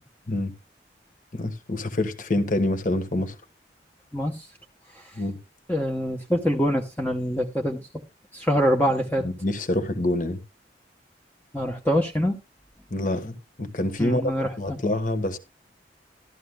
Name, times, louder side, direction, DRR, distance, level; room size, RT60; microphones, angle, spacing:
voice 1, 1.3-3.3 5.2-5.4 9.2-10.4 12.9-14.3 14.6-15.4, left 1 dB, 45° left, 1.3 m, -26 dB
voice 2, 4.1-4.5 4.9-5.2 5.7-8.0 8.3-9.3 11.5-12.4 14.0-14.8, equal, 10° left, 0.8 m, -25 dB
13.5 x 13.0 x 2.2 m
head